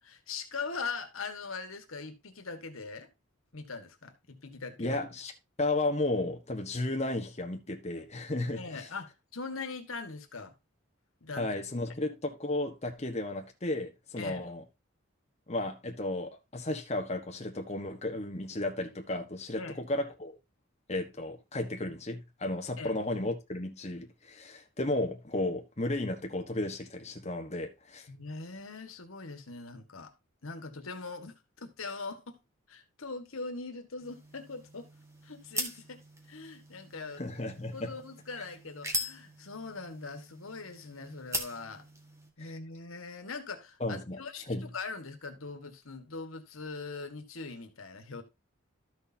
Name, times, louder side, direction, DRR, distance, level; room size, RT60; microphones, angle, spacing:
voice 1, 0.0-3.1 3.5-5.0 8.6-10.5 11.2-11.5 14.2-14.5 19.6-19.8 22.8-23.0 28.1-30.1 30.4-32.4 32.7-34.9 35.2-36.0 36.3-37.2 37.7-41.8 42.4-48.2, left 4 dB, 85° left, 1.6 m, -41 dB
voice 2, 4.8-5.3 5.6-8.9 11.4-14.6 15.5-20.3 20.9-28.1 37.2-37.9 43.8-44.2 44.5-44.7, left 2 dB, 30° left, 1.3 m, -34 dB
sound 1, 34.0-42.3, right 1 dB, 15° right, 1.6 m, -41 dB
13.0 x 6.5 x 2.8 m
head